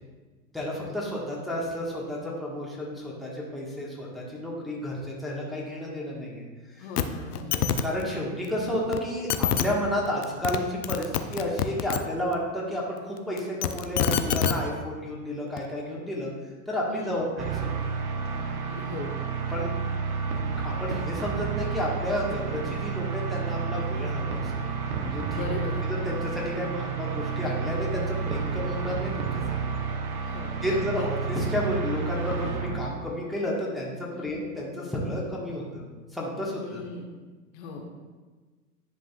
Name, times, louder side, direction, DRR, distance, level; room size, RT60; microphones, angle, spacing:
voice 1, 0.5-6.4 6.7-6.8 7.8-16.3 16.7-17.7 19.5-19.7 20.4-24.5 25.0-25.4 25.8-29.4 30.6-35.8 36.1-36.8, left 1 dB, ahead, -5 dB, 1.4 m, -31 dB
voice 2, 6.8-7.6 16.9-17.2 18.3-19.2 25.3-25.8 30.3-31.1 34.1-34.3 36.6-37.1 37.5-37.9, left 4 dB, 50° left, 1 dB, 1.1 m, -38 dB
sound 1, 7.0-7.1 7.3-7.8 8.9-9.0 9.3-9.6 10.2-10.6 10.8-12.0 13.4-14.5 15.6-15.7, left 9 dB, 80° left, 0.6 m, -25 dB
sound 2, 17.4-33.0, right 5 dB, 65° right, 1.0 m, -30 dB
10.0 x 5.4 x 2.4 m, 1.3 s
hypercardioid pair, 100°, 46 cm